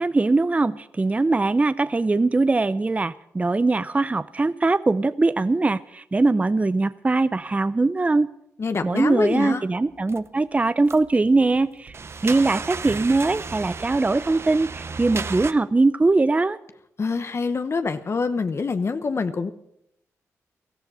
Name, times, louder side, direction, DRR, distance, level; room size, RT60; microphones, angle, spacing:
voice 1, 0.0-8.3 8.8-12.0 12.2-16.6, right 3 dB, 25° right, 16 dB, 0.5 m, -21 dB
voice 2, 8.6-9.6 17.0-19.5, left 4 dB, 50° left, 10 dB, 1.0 m, -25 dB
sound 1, 10.1-10.3 10.9-11.2 11.5-15.5, right 4 dB, 45° right, 0.8 m, -34 dB
17.0 x 14.0 x 5.5 m, 0.78 s
cardioid pair, 70°, 6 cm